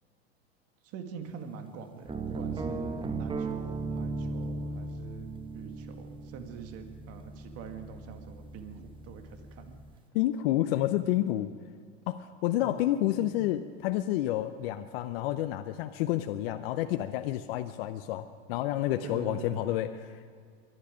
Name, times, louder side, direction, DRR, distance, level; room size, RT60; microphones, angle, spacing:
voice 1, 0.8-9.8 12.6-12.8 13.2-13.4 19.0-19.9, right 6 dB, 50° right, 6 dB, 2.0 m, -44 dB
sound 1, 2.1-10.0, right 3 dB, 15° right, 1.1 m, -37 dB
voice 2, 10.1-11.5 12.1-19.9, left 14 dB, 65° left, 9 dB, 0.8 m, -29 dB
23.5 x 11.0 x 5.1 m, 2.1 s
hypercardioid pair, 90°, 31 cm